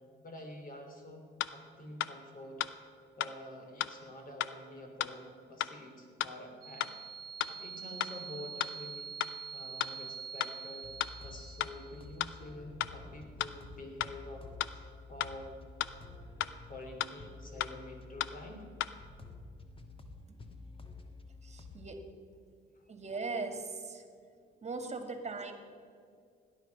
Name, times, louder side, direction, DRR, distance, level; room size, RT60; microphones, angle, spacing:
voice 1, 0.2-2.6 3.2-6.9 7.4-9.2 9.5-10.9 11.2-14.4 14.7-15.6 16.7-18.7, left 1 dB, 45° left, 3 dB, 3.4 m, -48 dB
sound 1, 1.4-1.5 2.0-2.1 2.6-2.7 3.2-3.3 3.8-3.9 4.4-4.5 5.0-5.1 5.6-5.7 6.2-6.3 6.8-6.9 7.4-7.5 8.0-8.1 8.6-8.7 9.2-9.3 9.8-9.9 10.4-10.5 11.0-11.1 11.6-11.7 12.2-12.3 12.8-12.9 13.4-13.5 14.0-14.1 14.6-14.7 15.2-15.3 15.8-15.9 16.4-16.5 17.0-17.1 17.6-17.7 18.2-18.3 18.8-18.9, left 13 dB, 90° left, 0.6 m, -33 dB
sound 2, 6.6-12.3, right 6 dB, 50° right, 0.8 m, -45 dB
sound 3, 10.8-21.9, left 3 dB, 25° left, 1.6 m, -50 dB
voice 2, 21.4-22.1 22.9-24.1 24.6-25.5, right 3 dB, 35° right, 6 dB, 2.0 m, -39 dB
17.0 x 10.5 x 6.0 m, 2.2 s
cardioid pair, 90°, 20 cm